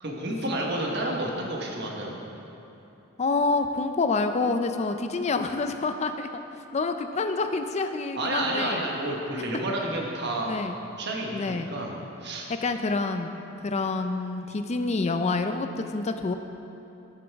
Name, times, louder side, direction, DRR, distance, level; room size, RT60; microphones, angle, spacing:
voice 1, 0.0-2.2 8.2-10.5 11.0-11.9 12.2-12.5, right 1 dB, 60° right, 0 dB, 1.3 m, -30 dB
voice 2, 3.2-6.4 6.7-8.8 10.4-10.8 11.3-11.7 12.5-13.4 13.6-16.3, left 3 dB, 35° left, 7 dB, 0.4 m, -27 dB
13.0 x 7.0 x 3.5 m, 2.9 s
head